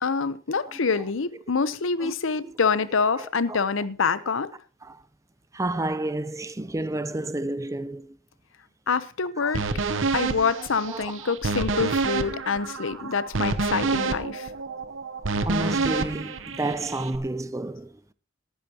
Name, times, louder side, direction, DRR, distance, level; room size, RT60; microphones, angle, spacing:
voice 1, 0.0-4.5 8.9-9.6 10.1-14.5, left 5 dB, 80° left, 0.8 m, -26 dB
voice 2, 3.2-3.6 4.8-5.0 5.5-8.2 9.4-9.6 9.9-10.1 10.9-11.3 11.7-11.9 12.3-12.4 13.0-13.1 13.9-14.0 15.4-17.9, right 2 dB, 15° right, 0.5 m, -31 dB
sound 1, 9.5-17.2, right 3 dB, 75° right, 0.9 m, -28 dB
19.0 x 10.0 x 2.9 m
head